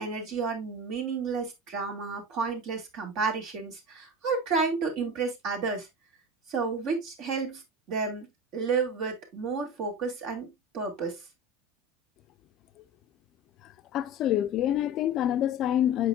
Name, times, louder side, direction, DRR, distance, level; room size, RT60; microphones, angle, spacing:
voice 1, 0.0-5.9 6.5-7.6 7.9-8.3 8.5-10.5 10.7-11.2, right 4 dB, 50° right, 2.7 m, -31 dB
voice 2, 13.9-16.1, left 11 dB, 40° left, 0.6 m, -26 dB
7.7 x 5.3 x 2.3 m
supercardioid pair, 145°, 0 cm